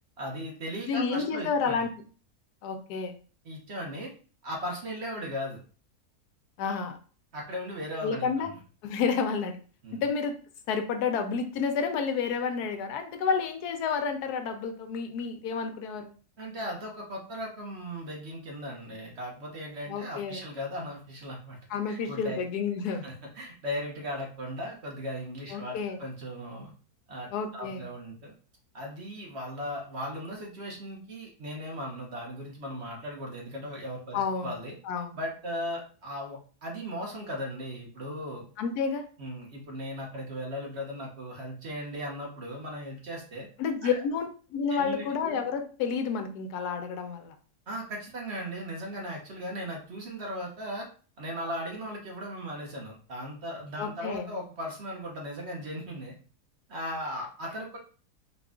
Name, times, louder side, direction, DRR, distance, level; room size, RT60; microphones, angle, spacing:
voice 1, 0.2-1.9 3.4-4.1 4.4-5.6 7.3-8.5 9.8-10.0 16.4-21.6 21.9-22.4 23.0-26.7 27.1-28.3 28.7-34.7 35.1-38.4 39.2-43.5 43.8-43.9 44.7-45.1 47.7-50.9 51.2-56.1 56.7-57.8, equal, 50° right, -1 dB, 1.1 m, -37 dB
voice 2, 0.9-1.9 2.6-3.2 6.6-7.0 8.0-8.5 8.8-9.6 9.9-10.3 10.7-16.1 19.9-20.4 21.7-23.2 25.5-26.0 27.3-27.8 34.1-34.5 34.8-35.2 38.6-39.0 43.6-47.3 53.8-54.3, left 5 dB, 90° left, 7 dB, 1.2 m, -30 dB
4.1 x 2.3 x 3.6 m, 0.39 s
omnidirectional pair, 1.6 m